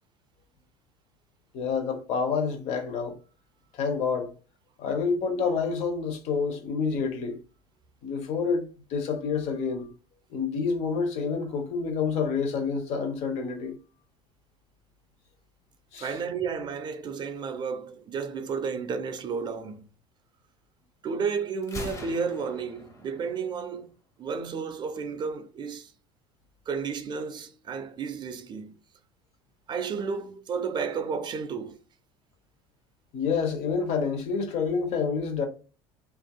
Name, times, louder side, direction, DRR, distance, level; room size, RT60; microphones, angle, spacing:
voice 1, 1.5-3.2 3.7-4.3 4.8-7.4 8.0-9.9 10.3-13.8 15.9-16.1 33.1-35.5, left 5 dB, 55° left, 0.7 m, -28 dB
voice 2, 16.0-19.8 21.0-23.9 24.2-25.9 26.7-28.8 29.7-31.8, right 5 dB, 35° right, 0.4 m, -32 dB
Gunshot gunfire, 21.6-23.6, left 2 dB, 25° left, 0.7 m, -41 dB
2.6 x 2.4 x 2.2 m
hypercardioid pair, 70°, 13 cm